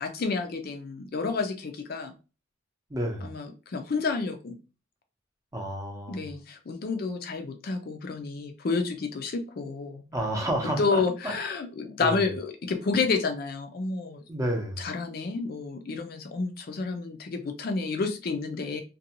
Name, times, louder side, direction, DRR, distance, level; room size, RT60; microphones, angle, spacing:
voice 1, 0.0-2.1 3.2-4.6 6.1-10.0 10.8-14.2 14.8-18.8, left 4 dB, 50° left, 6 dB, 0.4 m, -30 dB
voice 2, 2.9-3.3 5.5-6.2 10.1-11.3 12.0-12.2 14.3-14.8, right 1 dB, 15° right, 1 dB, 0.6 m, -30 dB
2.5 x 2.2 x 2.8 m, 0.32 s
head